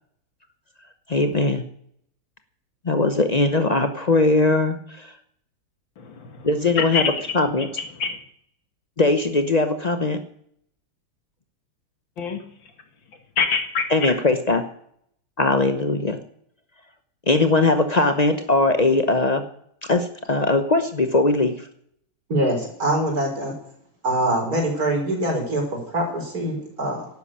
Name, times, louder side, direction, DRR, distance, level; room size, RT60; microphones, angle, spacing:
voice 1, 1.1-1.6 2.8-5.1 6.4-7.7 9.0-10.2 13.9-14.6 15.4-16.2 17.3-19.5 19.9-21.7, left 2 dB, 80° left, 7 dB, 0.3 m, -20 dB
voice 2, 6.0-6.5 6.8-7.4 8.0-8.2 12.2-12.4 13.4-14.1, left 5 dB, 60° left, 6 dB, 2.4 m, -25 dB
voice 3, 22.3-23.5 24.0-27.1, right 1 dB, 40° right, 1 dB, 4.9 m, -24 dB
12.0 x 10.5 x 8.7 m, 0.67 s
omnidirectional pair, 2.4 m